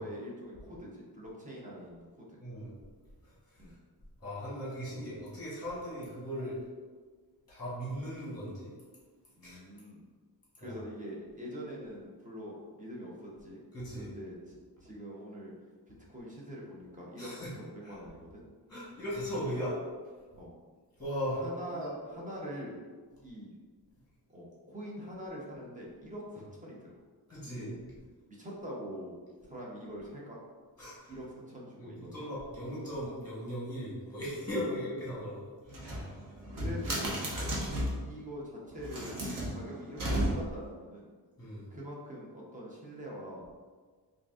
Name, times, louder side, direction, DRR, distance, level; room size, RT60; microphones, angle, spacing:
voice 1, 0.0-2.4 3.6-3.8 9.4-10.1 10.6-13.6 14.0-15.5 15.9-18.4 20.4-20.5 21.4-22.8 23.2-23.5 24.3-27.0 27.4-27.7 28.3-29.2 29.4-30.4 31.1-32.2 34.7-34.8 36.0-36.1 36.5-37.2 38.0-41.1 41.7-43.6, equal, 20° right, -4 dB, 0.7 m, -44 dB
voice 2, 2.4-2.8 3.2-3.8 4.2-6.5 7.5-8.7 9.4-9.6 10.6-10.8 13.7-14.1 17.2-17.5 17.8-17.9 18.7-19.7 21.0-21.4 21.7-21.9 27.3-27.9 30.8-31.1 31.8-35.5 35.8-36.1 36.9-37.1 41.4-41.7, equal, 10° left, -8 dB, 1.2 m, -38 dB
sound 1, 35.7-38.1 38.7-40.7, equal, 55° right, 0.9 m, -34 dB
3.7 x 2.6 x 3.5 m, 1.5 s
wide cardioid pair, 175°, 40 cm